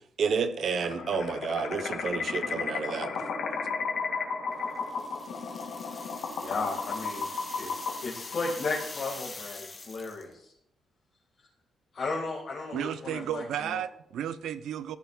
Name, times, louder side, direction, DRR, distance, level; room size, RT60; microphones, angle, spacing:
voice 1, 0.2-3.1, right 5 dB, 50° right, 10 dB, 1.0 m, -30 dB
sound 1, 0.7-9.2, left 4 dB, 80° left, 2.4 m, -34 dB
sound 2, 4.8-10.3, left 3 dB, 25° left, 1.5 m, -44 dB
voice 2, 6.4-7.3 7.6-7.7 8.0-10.5 11.9-13.4 13.7-13.8, left 3 dB, 40° left, -3 dB, 2.1 m, -34 dB
voice 3, 12.7-15.0, right 10 dB, 85° right, 13 dB, 0.7 m, -33 dB
15.0 x 10.5 x 2.4 m, 0.77 s
wide cardioid pair, 170°, 0 cm